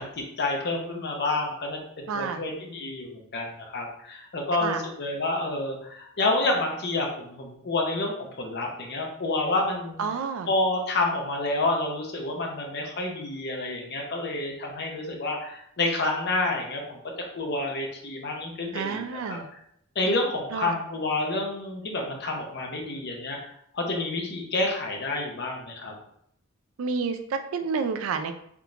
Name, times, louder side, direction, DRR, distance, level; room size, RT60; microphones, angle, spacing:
voice 1, 0.0-10.0 10.5-17.0 17.3-19.4 20.0-23.4 23.7-25.9, left 2 dB, 50° left, 1 dB, 0.7 m, -29 dB
voice 2, 2.1-2.4 4.6-4.8 10.0-10.5 18.7-19.5 20.5-20.8 26.8-28.3, right 5 dB, 65° right, 8 dB, 0.3 m, -29 dB
3.5 x 2.8 x 2.4 m, 0.70 s
head